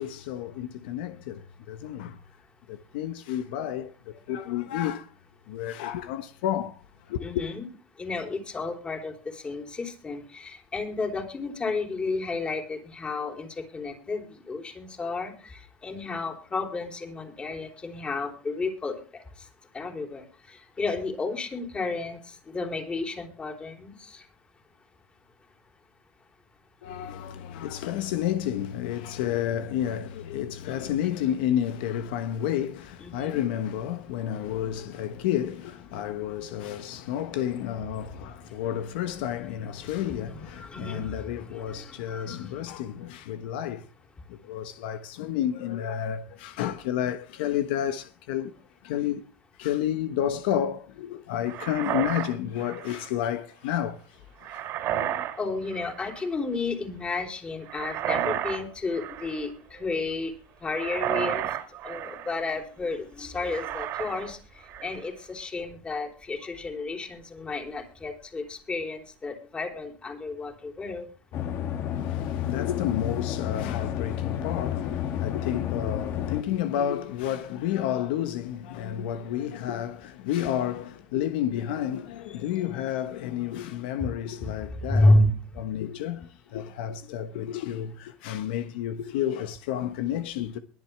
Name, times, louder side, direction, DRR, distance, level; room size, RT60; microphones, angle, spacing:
voice 1, 0.0-2.2 2.7-5.1 5.5-7.4 26.8-43.9 44.3-48.5 48.8-49.2 49.6-54.7 71.9-85.2 85.6-90.6, left 10 dB, 75° left, 1.3 m, -31 dB
voice 2, 7.2-7.7 8.0-19.0 19.7-22.2 22.5-24.2 32.4-32.5 33.0-33.4 36.5-36.8 39.8-42.5 55.4-60.3 60.6-61.5 61.8-64.4 64.8-71.1 84.0-84.1 84.4-84.5 84.8-85.3, left 2 dB, 20° left, 3.6 m, -31 dB
sound 1, 51.5-53.1 54.4-55.4 55.7-56.2 57.7-58.6 58.9-59.5 60.7-62.4 63.5-64.3 64.6-65.1, right 11 dB, 50° right, 3.1 m, -32 dB
sound 2, 71.3-76.4, left 10 dB, 50° left, 2.3 m, -31 dB
22.5 x 7.5 x 3.4 m
supercardioid pair, 120°, 5 cm